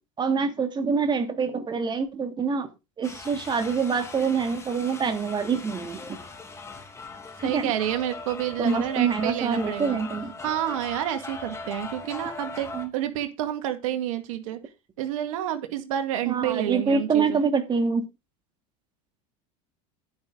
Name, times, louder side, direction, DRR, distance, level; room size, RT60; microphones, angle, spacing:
voice 1, 0.2-2.7 3.0-6.2 7.4-7.7 8.6-10.3 12.7-12.9 16.3-18.0, right 5 dB, 25° right, 7 dB, 2.6 m, -25 dB
sound 1, 3.0-12.9, left 3 dB, 15° left, 3.1 m, -40 dB
voice 2, 7.4-10.0 10.4-14.6 15.0-17.4, right 12 dB, 85° right, 8 dB, 2.0 m, -29 dB
11.0 x 9.5 x 3.8 m, 0.25 s
supercardioid pair, 110°, 17 cm